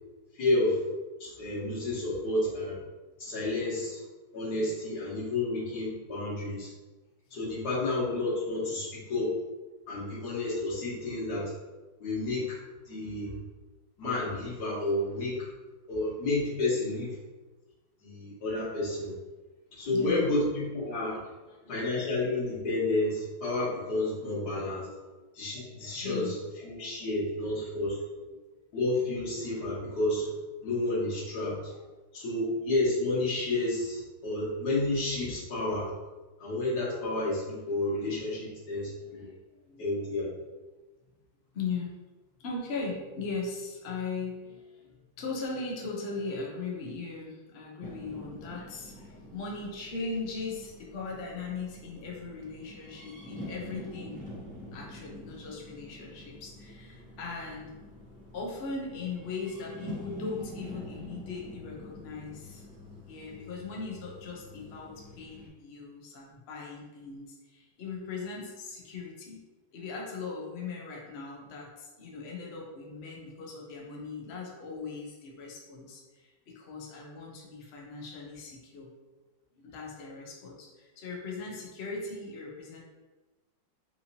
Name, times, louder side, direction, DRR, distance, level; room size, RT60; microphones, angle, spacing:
voice 1, 0.4-0.8 1.2-2.8 3.2-4.0 4.3-6.7 7.3-9.3 9.9-11.5 12.0-12.6 12.8-13.4 14.0-15.5 15.9-17.2 18.0-19.1 19.8-21.2 21.7-24.9 25.3-26.3 26.6-28.0 28.7-30.3 30.6-31.7 32.1-35.9 36.4-39.2 39.8-40.3, left 2 dB, 60° left, -8 dB, 1.8 m, -30 dB
voice 2, 19.9-20.3 21.2-21.7 24.8-25.1 25.8-26.4 27.0-27.1 38.2-38.3 38.8-39.4 39.6-39.9 41.5-41.9 42.4-54.2 54.7-57.7 58.3-62.6 63.1-69.4 69.7-78.9 79.6-82.8, left 4 dB, 85° left, -2 dB, 0.5 m, -39 dB
sound 1, 47.8-65.5, left 1 dB, 10° left, 0.4 m, -46 dB
4.2 x 2.8 x 2.7 m, 1.2 s
omnidirectional pair, 2.1 m